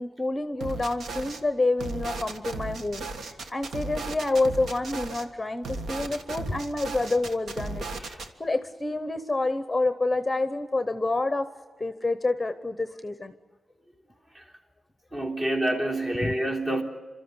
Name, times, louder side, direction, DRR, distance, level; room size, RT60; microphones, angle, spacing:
voice 1, 0.0-3.0 3.5-7.8 8.4-11.5 11.8-13.3 16.2-16.3, left 2 dB, 15° left, 11 dB, 0.9 m, -28 dB
sound 1, 0.6-1.4 1.8-5.2 5.6-8.3, right 3 dB, 85° right, 1.6 m, -36 dB
voice 2, 15.1-16.8, right 1 dB, 35° right, 0 dB, 3.5 m, -28 dB
29.0 x 13.5 x 9.7 m, 1.4 s
wide cardioid pair, 125°, 0 cm